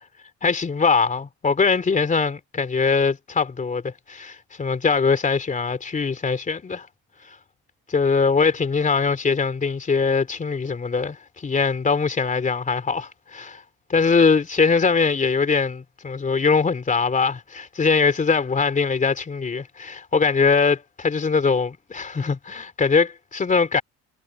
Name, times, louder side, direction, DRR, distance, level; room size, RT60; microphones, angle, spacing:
voice 1, 0.4-6.9 7.2-7.4 7.9-13.6 13.9-23.8, left 5 dB, 25° left, 3.0 m, -22 dB
cardioid pair, 130°, 31 cm